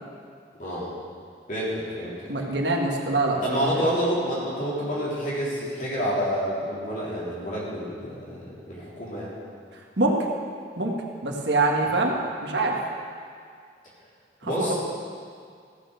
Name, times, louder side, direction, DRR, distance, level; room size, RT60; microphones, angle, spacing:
voice 1, 1.5-2.1 3.4-9.3 14.4-14.7, equal, 45° left, -7 dB, 3.5 m, -28 dB
voice 2, 2.3-3.8 10.0-10.2 10.8-10.9 11.2-12.1 12.4-12.8 14.4-14.7, right 2 dB, 80° right, 0 dB, 1.6 m, -24 dB
15.5 x 6.8 x 6.5 m, 2.2 s
head